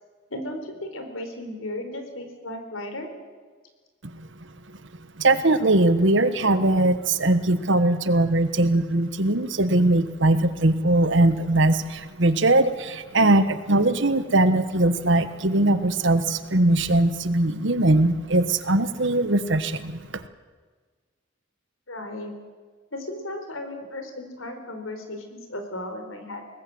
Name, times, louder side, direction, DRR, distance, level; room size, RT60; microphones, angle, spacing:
voice 1, 0.3-3.1 21.9-22.3 22.9-26.5, left 1 dB, 85° left, 6 dB, 4.1 m, -35 dB
voice 2, 5.2-20.2, right 2 dB, 60° right, 12 dB, 1.3 m, -21 dB
23.0 x 19.0 x 7.8 m, 1.5 s
head